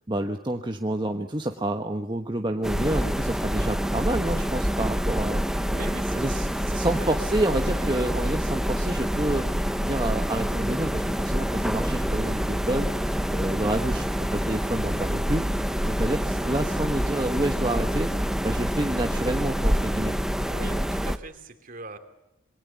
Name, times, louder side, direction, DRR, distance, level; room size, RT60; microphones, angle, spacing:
voice 1, 0.1-5.4 6.1-9.5 9.8-14.1 14.3-15.4 15.9-18.1 18.4-20.2, right 1 dB, 20° right, 4 dB, 1.2 m, -28 dB
sound 1, 2.6-21.2, equal, ahead, 0.9 m, -27 dB
voice 2, 5.7-6.4 6.7-7.1 20.5-22.0, right 2 dB, 45° right, 9 dB, 2.7 m, -40 dB
26.5 x 22.5 x 7.0 m, 0.91 s
head